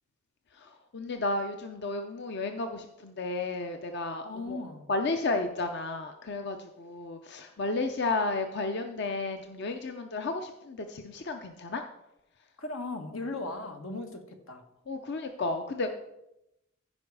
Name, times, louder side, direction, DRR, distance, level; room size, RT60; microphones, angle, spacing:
voice 1, 0.5-4.6 4.9-11.8 14.9-15.9, left 3 dB, 55° left, 6 dB, 0.6 m, -33 dB
voice 2, 4.2-4.8 12.6-14.6, left 2 dB, 85° left, 5 dB, 1.4 m, -37 dB
15.0 x 5.3 x 4.8 m, 0.88 s
head